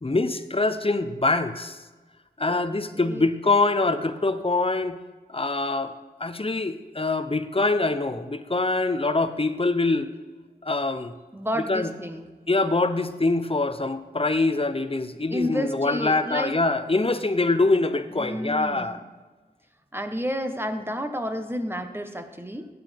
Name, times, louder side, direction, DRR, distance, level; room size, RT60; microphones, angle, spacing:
voice 1, 0.0-1.8 2.4-5.0 5.3-5.9 6.2-10.1 10.6-11.1 11.7-11.9 12.5-19.0, left 3 dB, 35° left, 10 dB, 0.8 m, -24 dB
voice 2, 2.9-3.3 11.3-12.3 15.3-16.6 18.1-19.0 19.9-22.7, equal, 15° right, 6 dB, 1.2 m, -31 dB
16.0 x 9.6 x 3.6 m, 1.3 s
wide cardioid pair, 45°, 17 cm